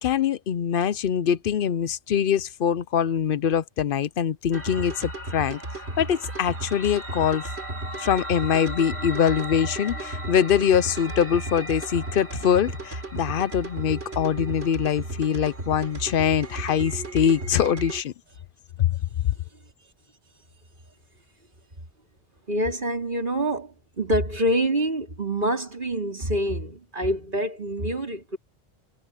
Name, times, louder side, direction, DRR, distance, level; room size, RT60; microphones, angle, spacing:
voice 1, 0.0-5.6 6.0-7.5 8.0-18.1 18.8-19.0, left 8 dB, 60° left, 0.8 m, -23 dB
sound 1, 4.5-18.0, right 1 dB, 75° right, 4.9 m, -34 dB
voice 2, 22.5-28.4, equal, 50° right, 4.2 m, -26 dB
omnidirectional pair, 1.1 m